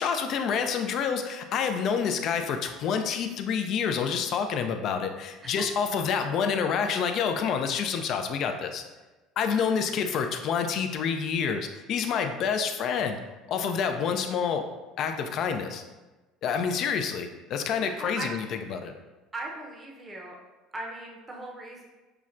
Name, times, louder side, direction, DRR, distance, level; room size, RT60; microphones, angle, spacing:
voice 1, 0.0-8.8 9.4-13.2 13.5-14.7 15.0-15.8 16.4-18.4 18.7-18.9, left 6 dB, 50° left, 6 dB, 0.4 m, -28 dB
voice 2, 17.8-18.3 19.3-20.4 20.7-21.8, right 2 dB, 20° right, -2 dB, 0.6 m, -39 dB
5.6 x 2.1 x 2.5 m, 1.2 s
supercardioid pair, 120°, 0 cm